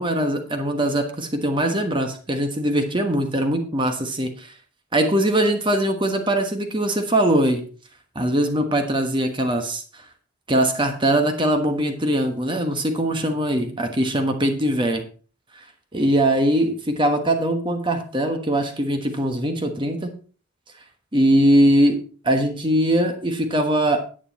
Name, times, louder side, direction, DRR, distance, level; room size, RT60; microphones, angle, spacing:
voice 1, 0.0-4.5 4.9-7.6 8.1-10.0 10.5-15.0 15.9-20.1 21.1-24.0, right 1 dB, 20° right, 6 dB, 1.2 m, -21 dB
10.0 x 9.3 x 4.2 m, 0.38 s
head